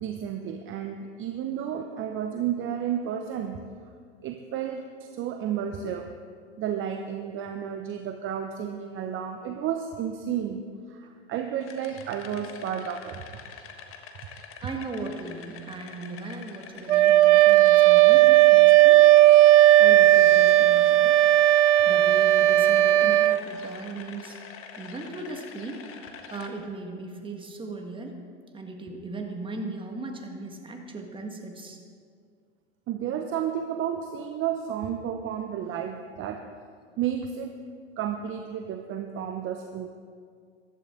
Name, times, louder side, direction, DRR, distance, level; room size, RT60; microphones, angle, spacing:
voice 1, 0.0-3.6 4.2-6.1 6.6-13.2 32.9-36.4 37.0-37.5 38.0-39.9, right 9 dB, 35° right, 5 dB, 0.8 m, -32 dB
sound 1, 11.6-26.5, left 6 dB, 40° left, 1.4 m, -46 dB
voice 2, 14.6-19.0 19.8-21.2 21.8-24.4 24.8-25.9 26.3-28.2 28.5-31.8, right 3 dB, 15° right, 3 dB, 1.7 m, -38 dB
Wind instrument woodwind instrument, 16.9-23.4, right 15 dB, 75° right, 0.5 m, -16 dB
14.5 x 12.0 x 3.8 m, 2.1 s
hypercardioid pair, 90°, 35 cm